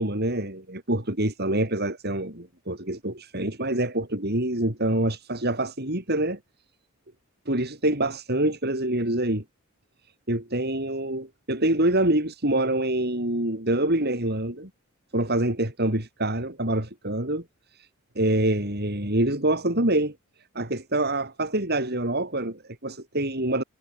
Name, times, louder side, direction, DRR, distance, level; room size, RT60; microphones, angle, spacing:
voice 1, 0.0-6.4 7.5-9.4 10.3-14.7 15.1-17.4 18.2-20.1 20.5-23.6, right 1 dB, 50° right, 7.4 m, -26 dB
head